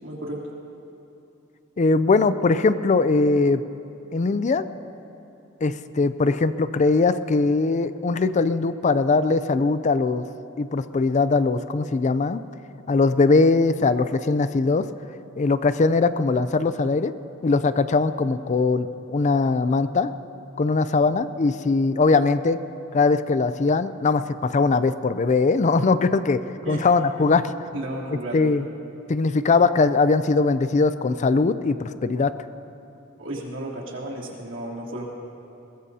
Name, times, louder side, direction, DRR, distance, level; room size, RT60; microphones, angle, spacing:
voice 1, 0.0-0.4 26.6-26.8 27.2-27.3 27.7-28.5 33.2-35.0, right 1 dB, 70° right, -4 dB, 3.1 m, -33 dB
voice 2, 1.8-3.6 4.1-4.6 5.6-10.2 10.6-12.4 12.9-14.8 15.4-17.1 17.4-20.1 20.6-22.6 22.9-26.4 26.7-27.5 28.3-28.6 29.1-32.3, left 3 dB, 35° left, 13 dB, 0.4 m, -21 dB
22.0 x 20.5 x 2.8 m, 2.9 s
head